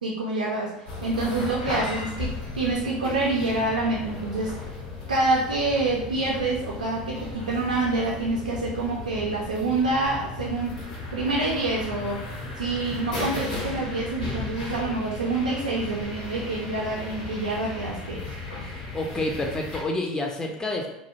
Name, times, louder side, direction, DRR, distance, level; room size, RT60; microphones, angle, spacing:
voice 1, 0.0-4.6 5.1-10.8 11.1-12.2 12.6-18.2, right 2 dB, 90° right, -3 dB, 0.4 m, -27 dB
sound 1, 0.9-19.8, left 3 dB, 80° left, 0.7 m, -35 dB
voice 2, 18.6-20.9, left 2 dB, 15° left, 2 dB, 0.4 m, -29 dB
2.4 x 2.1 x 2.8 m, 0.84 s
hypercardioid pair, 75°, 4 cm